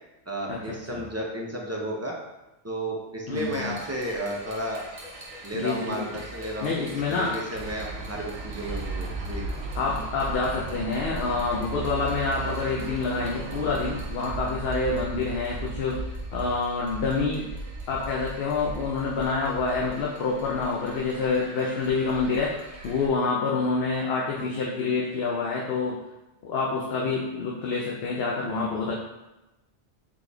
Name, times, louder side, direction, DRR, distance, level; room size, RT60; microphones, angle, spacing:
voice 1, 0.3-2.2 2.6-4.8 5.4-9.4, right 1 dB, 25° right, -2 dB, 0.3 m, -33 dB
voice 2, 3.3-3.8 5.5-6.1 6.6-7.3 9.8-16.0 16.3-17.5 17.9-26.0 26.4-28.9, left 4 dB, 70° left, -3 dB, 0.8 m, -27 dB
sound 1, 3.3-23.1, right 2 dB, 45° right, 0.8 m, -40 dB
Traffic noise roadway noise, 7.5-14.1, right 5 dB, 80° right, 0.9 m, -36 dB
4.1 x 3.1 x 3.3 m, 1.0 s
omnidirectional pair, 1.1 m